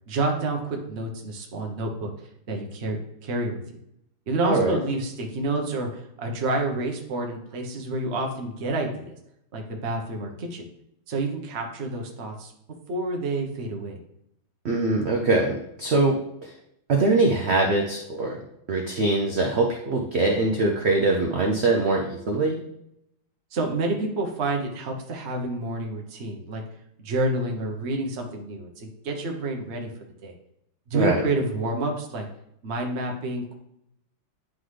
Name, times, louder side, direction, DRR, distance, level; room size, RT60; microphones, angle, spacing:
voice 1, 0.1-2.1 2.5-3.0 3.2-3.6 4.3-9.1 9.5-10.6 11.1-12.5 12.9-14.0 23.5-26.6 27.0-29.9 30.2-30.3 30.9-32.2 32.6-33.5, right 2 dB, 40° right, 2 dB, 1.1 m, -28 dB
voice 2, 4.4-4.8 14.6-16.5 16.9-18.4 18.7-22.6 30.9-31.2, right 2 dB, 75° right, 1 dB, 0.6 m, -23 dB
10.0 x 3.8 x 3.3 m, 0.79 s
omnidirectional pair, 2.2 m